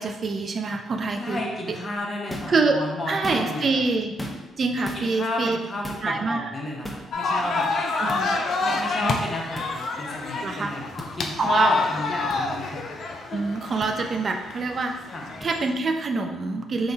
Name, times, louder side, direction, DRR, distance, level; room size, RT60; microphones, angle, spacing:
voice 1, 0.0-1.4 1.7-1.8 2.5-4.2 4.6-5.6 6.0-6.5 8.0-8.5 9.0-9.2 10.4-10.7 11.4-11.9 13.3-15.0 15.4-16.9, right 3 dB, 45° right, 5 dB, 0.3 m, -25 dB
voice 2, 1.1-3.8 4.9-7.7 8.6-12.8 13.3-13.8 15.1-15.3, left 1 dB, 35° left, -1 dB, 0.9 m, -33 dB
sound 1, 2.3-2.6 3.1-3.7 4.2-4.6 4.8-5.0 5.8-6.1 6.8-7.1 8.1-8.2 9.5-9.7 11.0-11.1 12.3-12.4 13.8-13.9 15.4-15.5, equal, 10° left, 0.6 m, -35 dB
sound 2, 7.1-15.7, left 3 dB, 60° left, 0.4 m, -28 dB
3.7 x 2.3 x 3.9 m, 1.1 s
cardioid pair, 90°, 0 cm